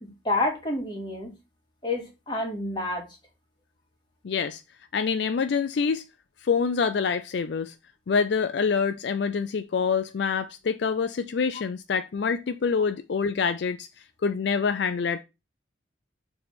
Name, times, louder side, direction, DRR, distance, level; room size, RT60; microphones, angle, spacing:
voice 1, 0.0-1.3 1.8-3.0, left 2 dB, 25° left, 2.1 m, -29 dB
voice 2, 4.2-4.6 4.9-6.0 6.4-7.7 8.1-13.9 14.2-15.2, left 5 dB, 65° left, 0.4 m, -26 dB
6.8 x 3.4 x 5.9 m
head